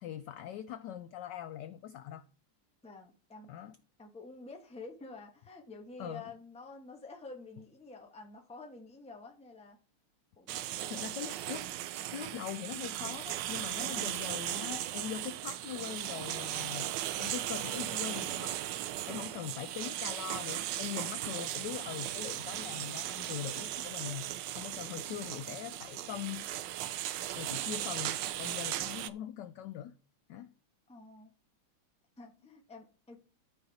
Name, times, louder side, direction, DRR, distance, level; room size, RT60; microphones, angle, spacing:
voice 1, 0.0-2.2 3.5-3.8 6.0-6.2 10.9-11.7 12.1-18.5 19.1-26.4 27.4-29.9 30.3-30.5, left 11 dB, 85° left, 0.9 m, -42 dB
voice 2, 2.8-3.5 4.0-9.8 10.4-10.9 13.8-14.1 19.1-19.7 30.9-31.3 32.2-33.2, left 3 dB, 5° left, 0.7 m, -49 dB
sound 1, 10.5-29.1, right 13 dB, 80° right, 1.0 m, -37 dB
12.5 x 5.2 x 4.0 m
omnidirectional pair, 2.4 m